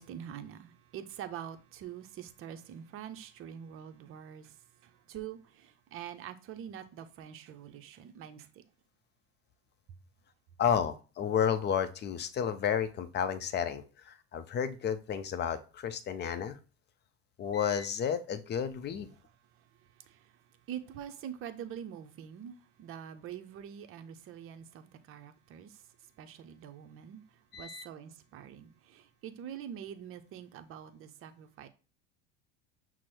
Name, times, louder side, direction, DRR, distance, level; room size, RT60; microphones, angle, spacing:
voice 1, 0.0-8.6 19.6-20.4 20.7-31.7, right 9 dB, 40° right, 0.6 m, -45 dB
voice 2, 10.6-16.6 17.4-19.2 27.5-27.8, left 8 dB, 35° left, 0.6 m, -32 dB
6.0 x 2.1 x 4.2 m
hypercardioid pair, 80°, 32 cm